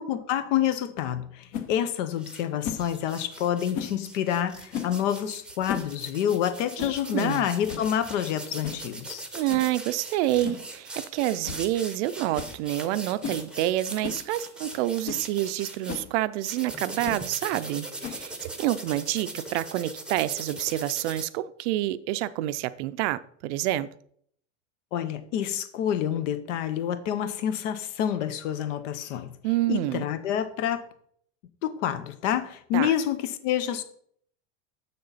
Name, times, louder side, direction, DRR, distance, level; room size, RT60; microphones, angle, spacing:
voice 1, 0.0-9.2 24.9-29.3 29.7-30.8 31.6-33.8, left 10 dB, 75° left, 0.9 m, -28 dB
sound 1, 1.5-1.7 2.6-2.9 3.7-4.0 4.7-5.0 5.5-5.9 6.2-6.3 6.8-7.0 7.4-7.5 7.7-7.9 8.6-8.9 9.5-9.7 10.4-10.7 11.0-11.1 11.4-11.7 11.9-12.0 12.3-12.6 13.2-13.4 14.0-14.2 14.7-14.8 15.0-15.3 15.9-16.1 17.0-17.3 18.0-18.4, left 8 dB, 55° left, 1.0 m, -35 dB
sound 2, 2.2-2.4 2.8-16.0 16.4-21.2, right 2 dB, ahead, 0.7 m, -40 dB
voice 2, 6.8-7.5 9.3-23.9 29.4-30.0 32.7-32.9, right 15 dB, 65° right, 0.5 m, -28 dB
6.8 x 6.6 x 4.1 m
supercardioid pair, 130°, 38 cm